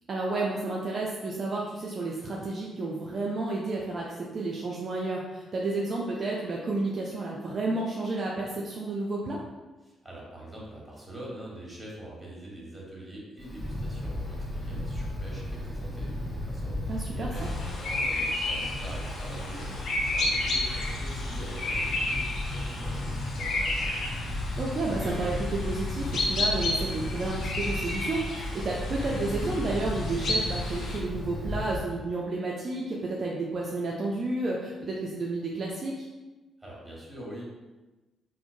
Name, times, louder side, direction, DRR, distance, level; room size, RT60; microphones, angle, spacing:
voice 1, 0.1-9.4 16.9-17.5 24.6-36.1, right 2 dB, 45° right, -3 dB, 0.4 m, -31 dB
voice 2, 9.8-24.0 36.6-37.4, right 1 dB, 10° right, -4 dB, 1.3 m, -44 dB
Wind, 13.4-31.8, left 1 dB, 15° left, 0.9 m, -34 dB
sound 1, 17.4-31.0, left 2 dB, 60° left, 0.5 m, -32 dB
3.5 x 2.0 x 2.5 m, 1.1 s
hypercardioid pair, 40°, 0 cm